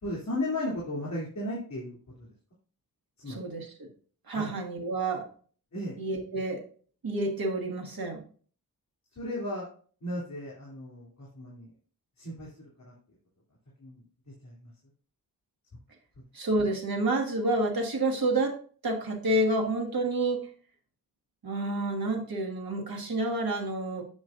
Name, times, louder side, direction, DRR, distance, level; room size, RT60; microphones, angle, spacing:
voice 1, 0.0-2.3 3.2-3.4 4.3-4.5 5.7-6.0 9.1-9.7 10.0-11.7 12.2-12.9 13.8-14.0 14.4-14.7, left 1 dB, 45° left, -6 dB, 3.1 m, -35 dB
voice 2, 3.3-3.9 4.3-5.2 6.0-6.6 7.0-8.2 16.3-18.5 18.8-20.4 21.4-24.0, right 2 dB, 65° right, 2 dB, 1.6 m, -29 dB
7.5 x 6.1 x 2.5 m, 0.44 s
wide cardioid pair, 125°, 38 cm